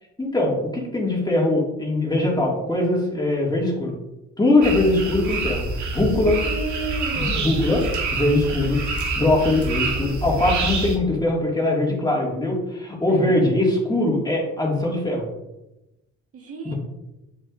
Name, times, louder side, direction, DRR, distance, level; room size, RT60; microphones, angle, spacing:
voice 1, 0.2-4.0 4.4-5.7 5.9-6.4 7.2-7.8 8.1-8.8 9.2-15.2 16.6-16.7, left 2 dB, 15° left, -2 dB, 2.1 m, -21 dB
sound 1, 4.6-11.0, right 3 dB, 70° right, 1.4 m, -27 dB
voice 2, 6.1-7.6 13.1-13.6 16.3-16.7, right 3 dB, 50° right, 0 dB, 1.5 m, -33 dB
7.4 x 6.3 x 2.6 m, 0.96 s
cardioid pair, 90°, 30 cm